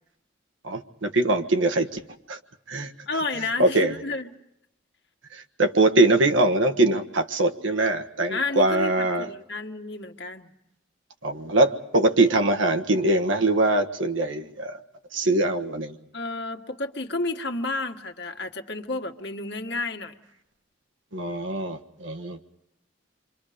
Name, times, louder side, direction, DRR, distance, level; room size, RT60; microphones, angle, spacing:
voice 1, 0.6-2.0 2.3-2.4 2.7-2.9 3.6-3.9 5.3-9.3 11.2-14.8 15.1-16.0 21.1-22.4, right 2 dB, 85° right, 5 dB, 1.5 m, -22 dB
voice 2, 3.1-4.3 8.3-10.5 16.1-20.1, left 3 dB, 60° left, 4 dB, 1.6 m, -31 dB
28.5 x 25.0 x 5.1 m, 0.81 s
head